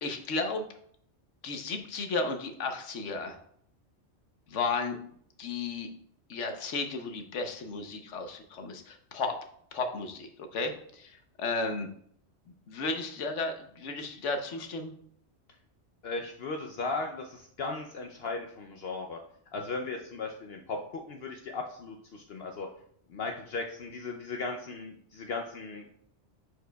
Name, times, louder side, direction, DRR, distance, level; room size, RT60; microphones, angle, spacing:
voice 1, 0.0-0.6 1.4-3.4 4.5-5.0 5.4-5.9 6.3-9.4 9.7-11.9 12.7-14.9, left 3 dB, 80° left, 6 dB, 1.1 m, -34 dB
voice 2, 16.0-19.2 19.5-22.7 23.1-25.9, left 3 dB, 60° left, 3 dB, 0.8 m, -37 dB
11.0 x 4.8 x 2.3 m, 0.64 s
omnidirectional pair, 1.2 m